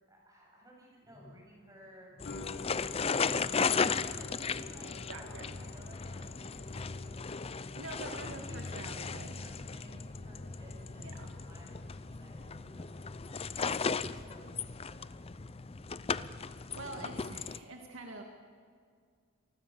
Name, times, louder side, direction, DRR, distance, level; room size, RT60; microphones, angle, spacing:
voice 1, 0.1-2.1 3.0-7.2 7.5-14.5 14.8-15.1, right 1 dB, 15° right, -2 dB, 7.7 m, -56 dB
sound 1, 1.0-14.6 14.9-16.8 17.1-17.2, left 1 dB, 35° right, 5.5 m, -62 dB
sound 2, 2.2-9.1 9.3-10.2, left 3 dB, 50° left, 1.8 m, -51 dB
sound 3, 2.2-17.6, left 5 dB, 25° left, 0.5 m, -36 dB
voice 2, 5.1-5.5 7.5-9.5 11.0-11.3 16.7-18.2, right 2 dB, 65° right, 2 dB, 2.2 m, -46 dB
28.5 x 20.0 x 7.1 m, 2.1 s
head